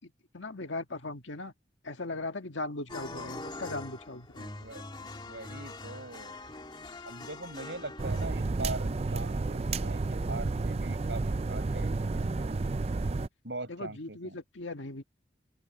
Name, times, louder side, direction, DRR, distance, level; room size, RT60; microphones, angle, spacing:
voice 1, 0.0-1.5 1.8-4.5 13.7-15.0, left 2 dB, 80° left, 1.7 m, -38 dB
sound 1, 2.9-8.3, left 2 dB, 25° left, 2.1 m, -43 dB
voice 2, 3.0-3.6 4.4-6.4 7.0-12.0 13.4-14.4, right 2 dB, 70° right, 7.2 m, -42 dB
sound 2, 8.0-13.3, right 3 dB, 35° right, 0.4 m, -31 dB
open air
head